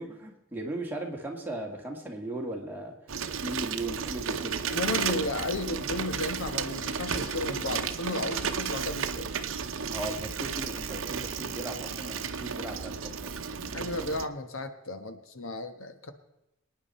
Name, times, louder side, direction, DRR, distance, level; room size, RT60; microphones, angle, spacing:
voice 1, 0.0-2.9 3.4-4.6 9.9-13.4, right 1 dB, 10° right, -1 dB, 2.1 m, -37 dB
Bicycle, 3.1-14.2, right 6 dB, 65° right, 0.8 m, -33 dB
voice 2, 4.7-9.3 13.7-16.1, left 2 dB, 70° left, 8 dB, 1.2 m, -34 dB
26.0 x 9.6 x 4.3 m, 0.95 s
head